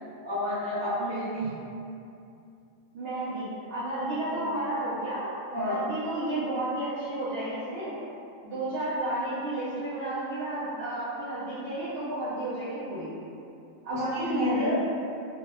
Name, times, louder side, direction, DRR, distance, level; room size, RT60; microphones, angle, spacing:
voice 1, 0.2-1.5 4.3-4.5 5.5-5.9 7.4-7.5 13.9-14.7, left 1 dB, 25° right, -13 dB, 0.8 m, -30 dB
voice 2, 2.9-5.3 5.7-8.0 8.4-13.1 13.8-14.7, right 1 dB, 60° right, -12 dB, 0.7 m, -32 dB
2.7 x 2.1 x 2.2 m, 2.6 s
omnidirectional pair, 1.4 m